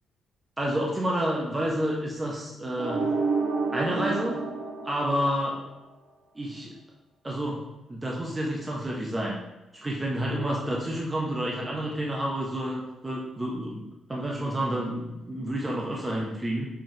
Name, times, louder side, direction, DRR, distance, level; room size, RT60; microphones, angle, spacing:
voice 1, 0.6-3.0 3.7-4.4 4.8-5.6 6.4-6.7 7.2-7.6 7.9-9.4 9.8-16.7, right 1 dB, 15° right, -3 dB, 0.4 m, -29 dB
sound 1, 2.8-5.8, right 4 dB, 75° right, 0.7 m, -29 dB
5.6 x 3.1 x 2.6 m, 0.98 s
cardioid pair, 175°, 0 cm